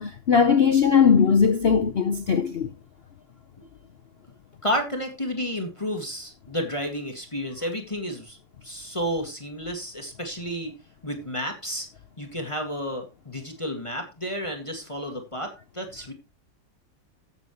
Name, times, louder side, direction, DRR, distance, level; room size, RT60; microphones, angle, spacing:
voice 1, 0.0-2.7, left 6 dB, 70° left, 0.6 m, -19 dB
voice 2, 4.6-10.7 11.0-11.9 12.2-16.1, equal, 15° left, 1.9 m, -31 dB
15.0 x 7.3 x 3.1 m
omnidirectional pair, 2.0 m